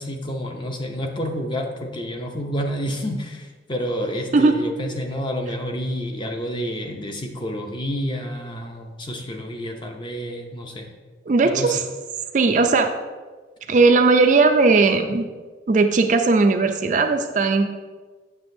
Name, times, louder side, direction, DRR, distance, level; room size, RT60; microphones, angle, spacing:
voice 1, 0.0-10.9 11.4-11.7, equal, 25° left, 3 dB, 0.6 m, -29 dB
voice 2, 4.3-4.6 11.3-11.8 12.3-12.9 13.7-15.3 15.7-17.7, right 3 dB, 40° right, 6 dB, 0.4 m, -17 dB
7.6 x 6.5 x 2.6 m, 1.4 s
head